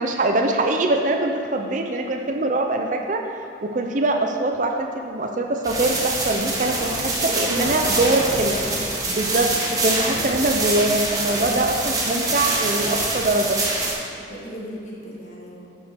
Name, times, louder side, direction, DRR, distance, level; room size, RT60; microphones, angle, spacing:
voice 1, 0.0-3.3 3.6-7.1 7.4-8.6 9.1-9.5 9.8-13.6, right 2 dB, 45° right, 3 dB, 0.6 m, -23 dB
sound 1, 5.6-13.9, right 2 dB, 20° right, 1.1 m, -25 dB
voice 2, 6.7-9.0 14.3-15.7, equal, 40° left, -4 dB, 1.6 m, -34 dB
10.5 x 5.1 x 4.5 m, 2.8 s
head